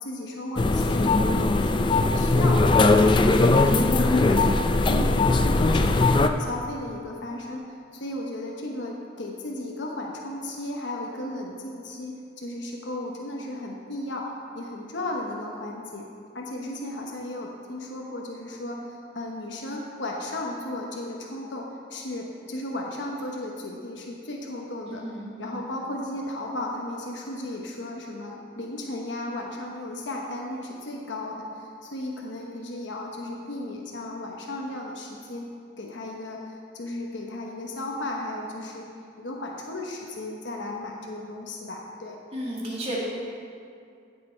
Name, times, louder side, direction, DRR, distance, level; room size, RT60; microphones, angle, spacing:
voice 1, 0.0-2.8 3.1-4.4 4.7-7.6 7.9-16.0 16.3-21.6 21.9-25.0 25.4-35.5 35.8-38.9 39.2-42.2, left 1 dB, 70° left, -1 dB, 1.0 m, -35 dB
sound 1, 0.6-6.3, left 2 dB, 25° left, 0.4 m, -20 dB
voice 2, 24.9-25.6 42.3-43.0, right 1 dB, 30° right, -5 dB, 2.1 m, -34 dB
15.0 x 6.8 x 4.4 m, 2.4 s
head